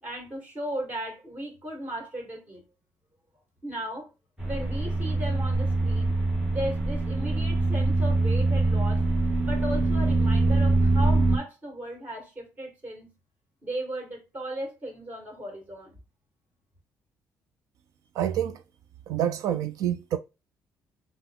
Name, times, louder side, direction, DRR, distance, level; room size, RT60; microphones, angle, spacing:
voice 1, 0.0-2.6 3.6-4.1 4.5-6.1 6.5-9.0 9.4-13.1 13.6-16.0, right 1 dB, 25° right, 2.0 m, -36 dB
sound 1, 4.4-11.4, right 2 dB, 10° right, 1.1 m, -24 dB
voice 2, 18.1-18.6 19.1-20.2, right 10 dB, 75° right, 0.4 m, -27 dB
5.7 x 2.1 x 3.5 m
cardioid pair, 170°, 6 cm